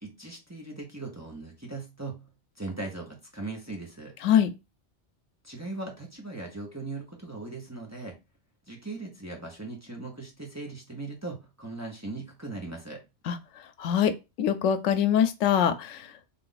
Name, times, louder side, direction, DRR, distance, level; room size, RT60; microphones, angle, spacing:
voice 1, 0.0-2.2 2.6-4.1 5.4-8.1 8.7-13.0, right 3 dB, 15° right, 0.8 m, -39 dB
voice 2, 4.2-4.5 13.2-14.1 14.4-16.3, left 9 dB, 85° left, 0.9 m, -24 dB
3.6 x 2.5 x 3.8 m
omnidirectional pair, 1.2 m